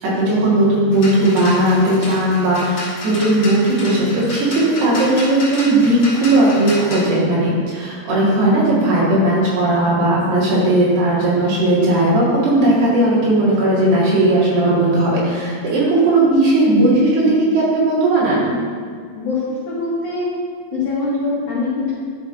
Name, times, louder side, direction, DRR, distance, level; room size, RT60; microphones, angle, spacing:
voice 1, 0.0-18.6, right 1 dB, 65° right, -7 dB, 3.7 m, -16 dB
sound 1, 0.9-7.1, left 1 dB, 45° left, 2.1 m, -31 dB
voice 2, 19.7-20.3 20.7-21.9, left 3 dB, 75° left, -7 dB, 1.8 m, -22 dB
11.0 x 6.1 x 2.6 m, 2.1 s
omnidirectional pair, 5.2 m